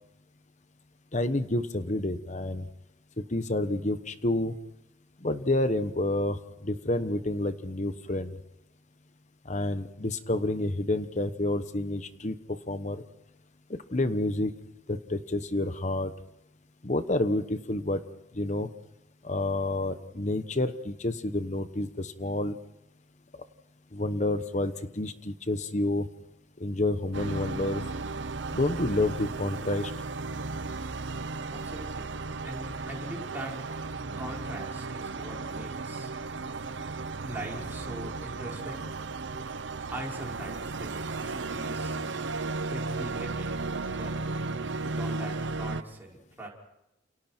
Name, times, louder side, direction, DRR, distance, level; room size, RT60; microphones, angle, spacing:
voice 1, 1.1-2.7 3.2-4.6 5.2-8.3 9.4-13.0 13.9-14.5 14.9-16.1 16.8-18.0 18.3-18.7 19.2-22.6 23.9-26.1 26.6-27.8 28.5-29.9, left 2 dB, 35° left, 10 dB, 1.1 m, -29 dB
sound 1, 27.1-45.8, right 3 dB, 65° right, 0.9 m, -35 dB
voice 2, 31.5-32.1 32.4-33.6 34.2-36.1 37.2-38.9 39.9-42.0 42.7-43.5 44.0-44.1 44.8-46.5, right 1 dB, 10° right, -3 dB, 5.5 m, -41 dB
29.5 x 28.5 x 4.5 m, 0.89 s
head